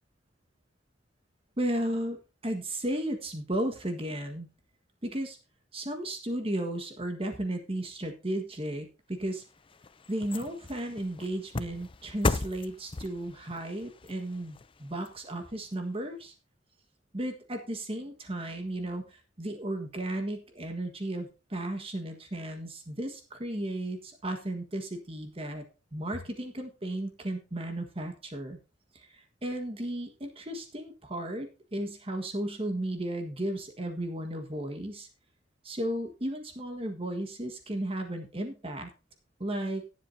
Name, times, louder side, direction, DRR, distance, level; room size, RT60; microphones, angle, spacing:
voice 1, 1.6-4.5 5.0-5.4 5.7-9.4 10.1-16.3 17.1-25.6 25.9-28.6 28.9-35.1 35.6-38.9 39.4-39.8, right 1 dB, 30° right, 5 dB, 1.5 m, -34 dB
sound 1, 9.3-15.8 16.2-16.3, left 3 dB, 30° left, 0.5 m, -37 dB
18.0 x 7.6 x 2.7 m, 0.30 s
head